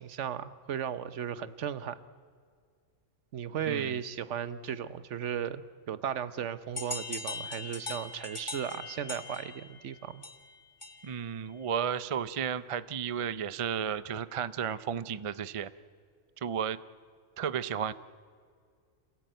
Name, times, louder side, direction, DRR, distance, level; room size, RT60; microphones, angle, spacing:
voice 1, 0.0-2.0 3.3-10.2, right 8 dB, 70° right, 15 dB, 1.1 m, -36 dB
voice 2, 3.7-4.0 11.0-15.7 16.4-16.8 17.4-17.9, right 8 dB, 40° right, 15 dB, 0.5 m, -33 dB
sound 1, 6.8-11.3, left 3 dB, 25° left, 1.4 m, -41 dB
27.0 x 17.0 x 9.1 m, 2.1 s
omnidirectional pair, 1.3 m